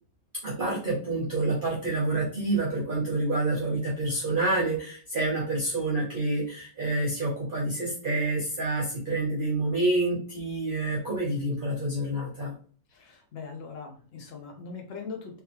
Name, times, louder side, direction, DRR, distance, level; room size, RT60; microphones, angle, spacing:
voice 1, 0.4-12.5, right 2 dB, 35° right, -4 dB, 1.0 m, -28 dB
voice 2, 12.9-15.4, left 5 dB, 45° left, 2 dB, 1.0 m, -41 dB
3.8 x 3.2 x 2.9 m, 0.43 s
omnidirectional pair, 1.9 m